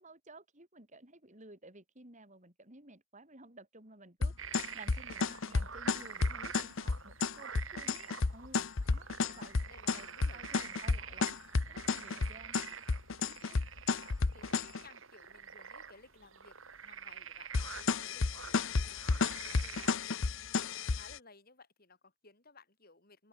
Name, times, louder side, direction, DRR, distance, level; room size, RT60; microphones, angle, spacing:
voice 1, 0.0-4.3 4.7-9.6 9.9-11.4 11.7-12.8 13.4-13.7, right 2 dB, 35° right, 5.0 m, -55 dB
sound 1, 4.2-14.8 17.5-21.2, left 4 dB, 65° left, 0.8 m, -31 dB
sound 2, 4.4-19.9, right 7 dB, 70° right, 4.9 m, -48 dB
voice 2, 9.0-10.5 11.1-11.3 13.3-13.6 14.3-16.6 16.8-23.3, left 3 dB, 45° left, 5.6 m, -59 dB
open air
head